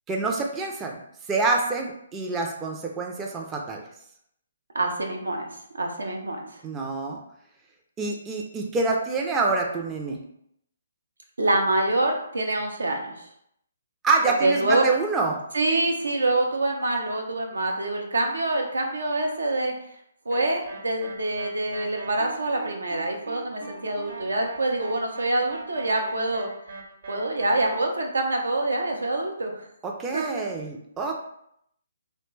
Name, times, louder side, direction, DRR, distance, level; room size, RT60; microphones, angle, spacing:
voice 1, 0.1-1.0 1.3-3.8 6.6-7.2 8.0-10.2 14.0-15.4 29.8-31.3, right 3 dB, 15° right, 0 dB, 0.4 m, -26 dB
voice 2, 4.7-6.5 11.4-13.3 14.4-14.9 15.5-19.7 20.3-26.5 27.1-29.6 30.1-30.4, right 2 dB, 80° right, 1 dB, 0.6 m, -26 dB
sound 1, 20.3-27.8, right 3 dB, 65° right, 0.9 m, -41 dB
2.7 x 2.1 x 3.1 m, 0.73 s
figure-of-eight pair, 140°, 0 cm